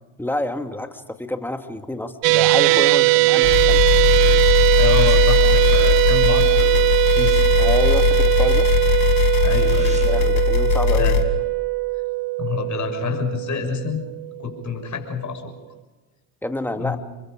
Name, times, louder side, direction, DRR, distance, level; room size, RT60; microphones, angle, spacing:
voice 1, 0.2-3.8 7.6-8.7 10.0-11.1 16.4-17.0, left 1 dB, 5° left, 6 dB, 2.4 m, -28 dB
sound 1, 2.2-14.6, right 22 dB, 80° right, 0.9 m, -19 dB
sound 2, 3.4-11.2, left 6 dB, 70° left, 2.8 m, -19 dB
sound 3, 4.6-5.3 5.6-5.9 6.2-6.3 6.7-8.6 8.9-9.0 9.2-10.4 10.7-10.8, right 1 dB, 15° right, 6.7 m, -43 dB
voice 2, 4.7-6.8 7.1-7.3 9.4-10.2 11.0-11.2 12.4-14.0 14.4-15.5 16.8-17.0, left 6 dB, 40° left, 3 dB, 6.6 m, -27 dB
29.5 x 23.5 x 5.2 m, 1.2 s
supercardioid pair, 80°, 46 cm